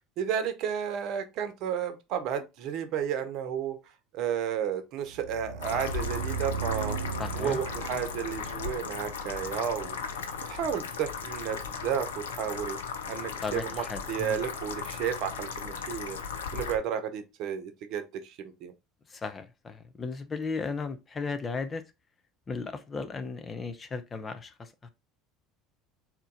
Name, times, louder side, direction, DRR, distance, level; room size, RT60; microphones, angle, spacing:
voice 1, 0.2-3.8 4.1-7.0 7.3-10.0 10.5-12.8 13.1-16.2 16.5-18.7, right 8 dB, 55° right, 0.9 m, -32 dB
sound 1, 5.1-10.0, right 5 dB, 75° right, 0.6 m, -37 dB
sound 2, 5.6-16.8, left 6 dB, 80° left, 0.6 m, -37 dB
voice 2, 7.2-7.6 13.4-14.4 19.1-21.8 22.5-24.9, left 4 dB, 30° left, 0.7 m, -35 dB
4.0 x 2.9 x 3.8 m
hypercardioid pair, 70°, 0 cm